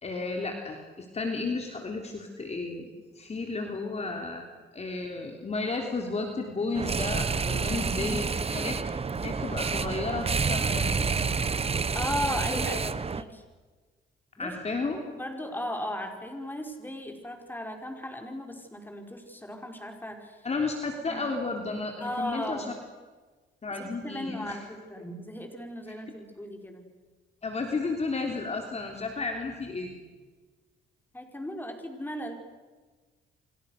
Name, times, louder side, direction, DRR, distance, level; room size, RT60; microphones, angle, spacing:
voice 1, 0.0-2.9 3.2-4.5 4.7-8.2 8.5-11.1 14.4-15.0 20.4-22.7 23.6-24.6 27.4-29.9, left 3 dB, 35° left, 3 dB, 3.6 m, -33 dB
sound 1, 6.7-13.2, right 5 dB, 30° right, 1.2 m, -29 dB
voice 2, 11.9-13.4 14.4-14.5 14.9-20.4 21.1-21.2 22.0-22.7 23.7-26.9 31.1-32.3, left 1 dB, 10° left, 3 dB, 5.5 m, -36 dB
30.0 x 26.0 x 6.7 m, 1.3 s
cardioid pair, 90°, 20 cm